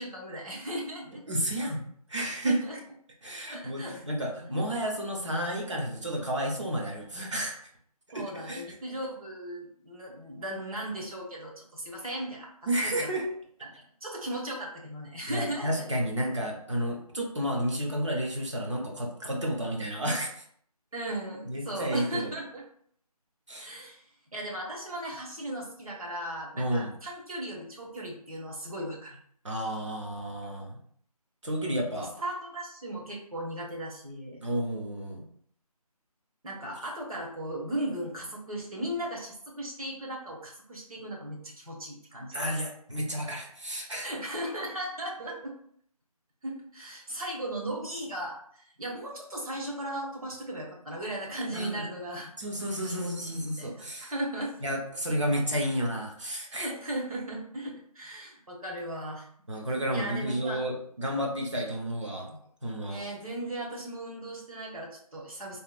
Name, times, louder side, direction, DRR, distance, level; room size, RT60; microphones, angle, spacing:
voice 1, 0.0-1.2 2.4-2.8 3.5-4.0 4.4-4.6 8.1-13.1 14.0-15.8 20.9-22.6 23.6-24.0 24.3-29.2 32.0-34.4 36.4-42.6 44.0-45.5 46.4-52.3 52.9-54.5 56.5-59.3 59.9-60.6 62.8-65.6, right 1 dB, 65° right, -2 dB, 1.0 m, -37 dB
voice 2, 1.3-1.8 2.1-2.6 3.2-7.5 8.1-8.6 12.7-13.3 15.3-20.4 21.4-22.3 23.5-23.7 26.6-26.9 29.4-30.8 31.4-32.1 34.4-35.2 42.3-44.1 51.5-51.8 52.4-54.1 54.6-56.7 59.5-62.4 62.6-63.0, right 1 dB, 50° right, 0 dB, 0.6 m, -31 dB
2.9 x 2.1 x 2.3 m, 0.63 s
figure-of-eight pair, 175°, 20 cm